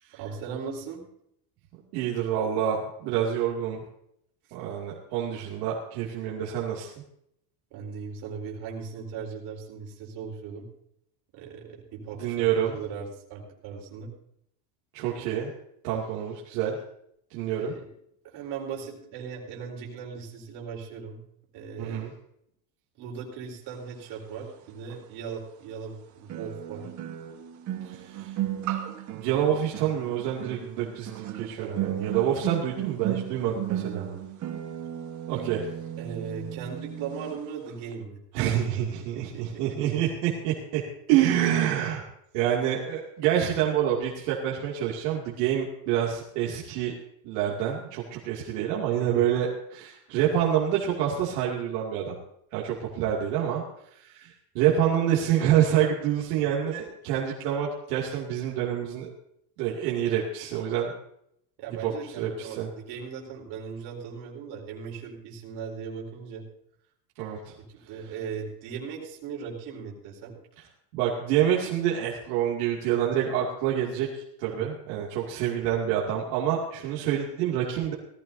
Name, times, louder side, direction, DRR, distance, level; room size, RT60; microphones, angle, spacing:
voice 1, 0.1-1.0 7.7-10.7 11.3-14.1 17.6-17.9 18.2-21.2 21.5-22.0 23.0-26.9 31.6-32.1 33.5-34.2 36.0-38.2 39.0-39.8 49.0-49.3 61.6-66.5 67.9-70.4 74.4-74.6, right 6 dB, 50° right, 0 dB, 4.2 m, -38 dB
voice 2, 1.9-3.8 4.5-6.9 12.2-12.7 14.9-15.5 15.8-16.8 17.3-17.7 21.8-22.1 27.9-28.3 29.1-34.1 35.3-35.7 38.3-40.8 41.1-42.0 42.3-47.0 47.2-52.2 52.5-53.6 53.9-59.1 59.6-60.9 61.8-62.7 67.2-67.5 70.9-74.1 74.4-77.9, right 10 dB, 75° right, -3 dB, 2.6 m, -27 dB
sound 1, 24.9-25.0 26.3-37.4 37.6-37.9, right 11 dB, 35° right, 1.5 m, -35 dB
18.5 x 15.0 x 2.8 m, 0.73 s
cardioid pair, 160°, 49 cm